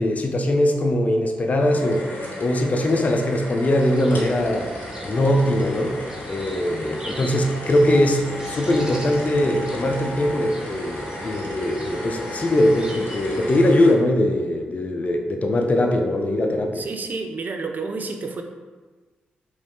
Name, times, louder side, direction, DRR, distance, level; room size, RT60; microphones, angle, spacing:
voice 1, 0.0-4.7 5.0-6.0 6.3-16.8, left 1 dB, 40° left, 3 dB, 0.5 m, -21 dB
sound 1, 1.6-13.9, left 1 dB, 60° left, 0.9 m, -35 dB
sound 2, 3.8-13.6, right 1 dB, 20° right, 0.7 m, -39 dB
voice 2, 16.7-18.4, right 3 dB, 50° right, 4 dB, 0.4 m, -30 dB
3.1 x 2.5 x 3.5 m, 1.3 s
supercardioid pair, 50°, 4 cm